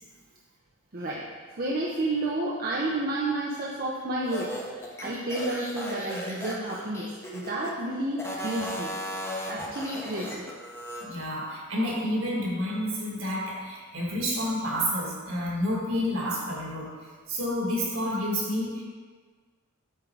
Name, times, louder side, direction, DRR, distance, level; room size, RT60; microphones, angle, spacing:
voice 1, 1.5-4.5 5.0-8.9 9.5-10.5, right 2 dB, 45° right, -5 dB, 0.7 m, -30 dB
sound 1, 4.2-7.7 8.1-11.0, equal, 10° left, 0.9 m, -36 dB
voice 2, 11.0-16.9 17.3-18.8, equal, 65° right, -3 dB, 1.8 m, -29 dB
8.8 x 3.8 x 4.6 m, 1.5 s
head